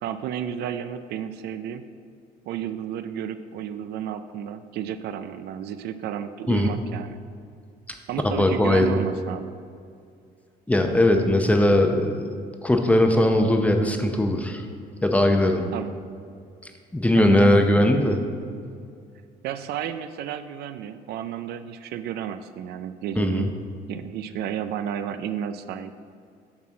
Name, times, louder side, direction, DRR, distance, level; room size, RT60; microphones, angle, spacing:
voice 1, 0.0-1.8 2.5-7.2 8.1-9.5 15.7-15.9 17.1-17.7 19.4-23.5 23.9-25.9, right 9 dB, 70° right, 11 dB, 0.4 m, -32 dB
voice 2, 8.2-9.0 10.7-12.3 12.6-14.6 15.0-15.6 16.9-18.2 23.2-23.5, left 1 dB, 10° left, 4 dB, 0.7 m, -19 dB
7.2 x 4.3 x 6.3 m, 2.3 s
cardioid pair, 110°, 17 cm